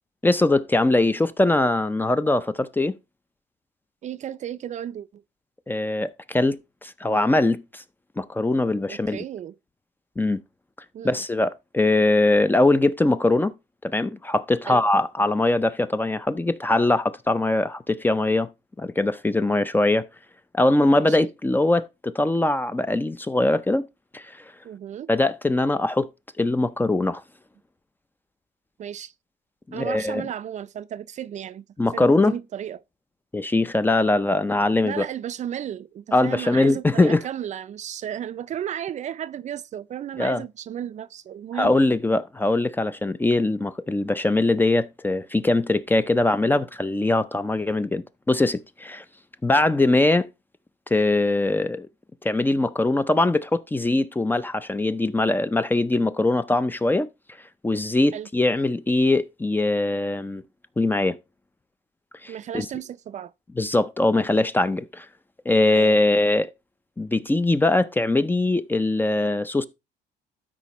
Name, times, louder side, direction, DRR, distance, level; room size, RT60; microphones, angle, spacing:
voice 1, 0.2-3.0 5.7-7.8 8.2-9.2 10.2-10.4 11.0-13.5 13.8-18.5 18.8-20.0 20.5-23.8 24.1-24.4 25.1-26.1 26.4-27.2 29.7-30.2 31.8-32.4 33.3-35.1 36.1-37.2 40.2-40.4 41.6-49.0 49.4-50.3 50.9-51.9 52.2-57.1 57.6-60.4 60.8-61.2 62.2-62.7 63.6-65.1 65.5-66.5 67.0-69.7, left 2 dB, 10° left, 0.4 m, -22 dB
voice 2, 4.0-5.2 8.9-9.5 10.9-11.2 14.6-14.8 20.9-21.3 24.6-25.1 28.8-29.1 29.7-31.7 31.9-32.8 34.8-41.8 58.1-58.3 62.3-63.3 65.7-66.0, right 10 dB, 45° right, 0.4 m, -34 dB
12.5 x 4.8 x 3.0 m
cardioid pair, 110°, 17 cm